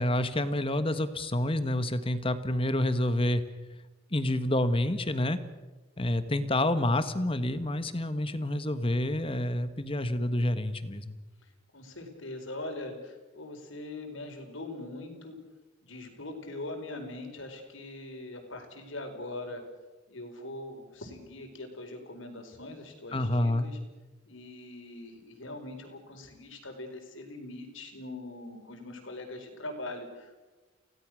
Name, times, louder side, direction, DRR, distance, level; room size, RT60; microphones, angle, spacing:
voice 1, 0.0-3.4 4.1-5.4 6.0-11.2 23.1-23.7, left 1 dB, 30° left, 11 dB, 1.4 m, -28 dB
voice 2, 11.7-15.4 15.8-19.6 20.1-23.8 24.3-30.5, left 2 dB, 75° left, 4 dB, 4.7 m, -42 dB
29.0 x 17.5 x 6.4 m, 1.2 s
head